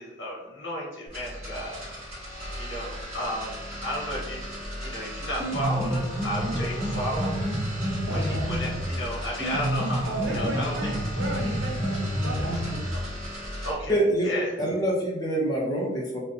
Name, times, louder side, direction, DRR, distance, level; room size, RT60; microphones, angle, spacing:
voice 1, 0.0-1.8 2.5-4.4 4.8-7.4 8.1-10.9 13.6-14.5, equal, 80° left, -4 dB, 1.4 m, -33 dB
sound 1, 1.1-13.7, equal, 35° right, 1.3 m, -37 dB
Piano, 5.2-13.2, equal, 15° right, 0.9 m, -29 dB
voice 2, 8.1-8.5 10.1-12.9, right 2 dB, 90° right, 0 dB, 0.8 m, -34 dB
voice 3, 13.9-14.3 14.6-16.2, right 1 dB, 20° left, -2 dB, 0.7 m, -25 dB
3.5 x 2.6 x 2.7 m, 1.1 s
head